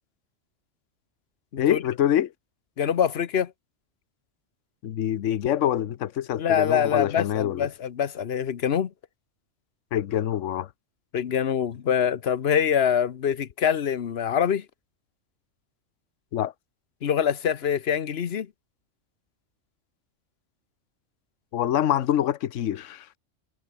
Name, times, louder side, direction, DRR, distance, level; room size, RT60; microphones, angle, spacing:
voice 1, 1.6-2.3 4.8-7.7 9.9-10.7 16.3-16.5 21.5-23.1, left 11 dB, 80° left, 1.1 m, -25 dB
voice 2, 2.8-3.5 6.4-8.9 11.1-14.6 17.0-18.5, left 8 dB, 55° left, 1.1 m, -24 dB
omnidirectional pair, 1.3 m